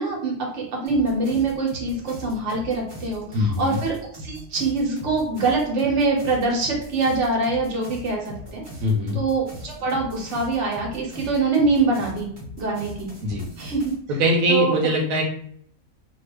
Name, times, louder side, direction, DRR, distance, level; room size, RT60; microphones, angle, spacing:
voice 1, 0.0-8.2 8.5-8.6 9.1-12.3 12.6-13.1 13.6-13.9 14.5-14.7, right 3 dB, 65° right, -1 dB, 1.2 m, -24 dB
sound 1, 0.9-13.9, equal, 25° right, 1.0 m, -40 dB
voice 2, 3.3-3.8 8.8-9.2 13.2-13.4 14.2-15.2, equal, 90° right, -1 dB, 1.1 m, -21 dB
2.7 x 2.3 x 3.3 m, 0.63 s
omnidirectional pair, 1.4 m